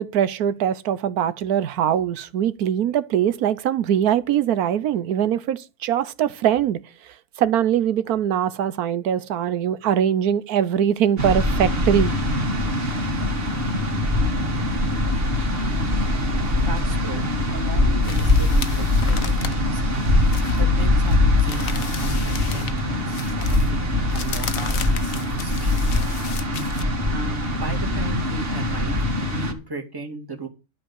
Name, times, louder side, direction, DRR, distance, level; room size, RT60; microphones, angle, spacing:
voice 1, 0.0-6.8 7.4-12.1, right 9 dB, 80° right, 1.3 m, -22 dB
sound 1, 11.2-29.5, left 1 dB, 40° right, 2.2 m, -22 dB
voice 2, 16.6-20.0 20.6-26.0 27.1-29.0 29.3-30.5, right 2 dB, 15° right, 2.2 m, -36 dB
sound 2, 18.0-22.8 23.1-26.8, left 8 dB, 65° left, 1.3 m, -36 dB
12.0 x 5.2 x 8.6 m
omnidirectional pair, 1.6 m